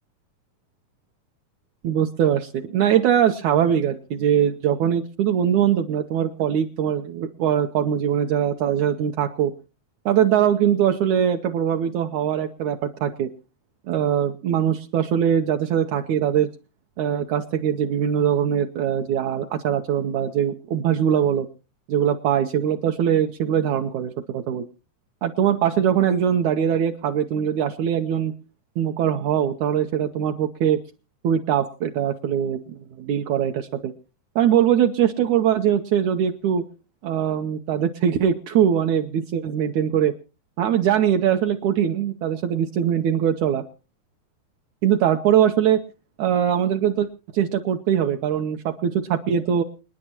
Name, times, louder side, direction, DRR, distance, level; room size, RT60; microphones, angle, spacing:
voice 1, 1.8-9.5 10.1-13.3 13.9-16.5 17.0-21.5 21.9-24.7 25.2-28.3 28.8-30.8 31.2-32.6 33.0-33.9 34.4-36.6 37.0-40.1 40.6-43.6 44.8-45.8 46.2-47.1 47.3-49.6, right 9 dB, 70° right, 5 dB, 2.0 m, -22 dB
28.0 x 9.9 x 2.9 m, 0.33 s
omnidirectional pair, 3.9 m